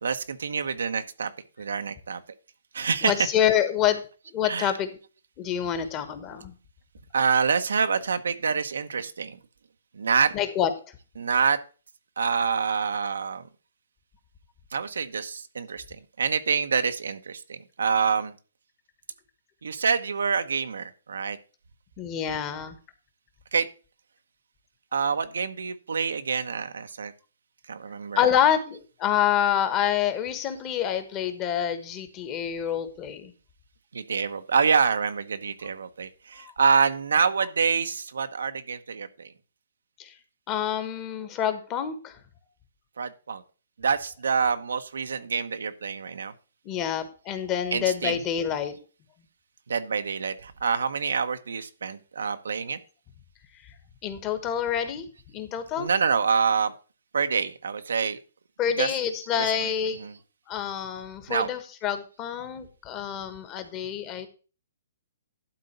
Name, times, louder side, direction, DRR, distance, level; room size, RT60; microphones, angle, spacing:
voice 1, 0.0-1.3 1.6-2.2 2.7-3.3 4.4-4.8 7.1-9.4 9.9-10.3 11.1-11.6 12.2-13.5 14.7-15.8 16.2-18.3 19.6-21.4 23.5-23.7 24.9-27.1 27.7-28.3 33.9-39.3 43.0-43.4 43.8-46.3 47.7-48.2 49.7-52.8 55.8-56.7 57.1-58.2 58.6-59.0 59.3-59.7 60.0-60.2 61.3-61.5, right 6 dB, 85° right, 9 dB, 1.0 m, -26 dB
voice 2, 3.0-4.0 4.3-5.0 5.4-6.5 10.3-10.7 22.0-22.8 28.1-33.3 36.4-36.5 40.0-40.1 40.5-42.2 46.6-48.7 53.6-53.7 54.0-55.0 55.3-55.9 58.6-60.0 60.5-64.3, left 9 dB, 25° left, 10 dB, 1.3 m, -27 dB
12.0 x 3.9 x 6.7 m, 0.35 s
hypercardioid pair, 150°, 0 cm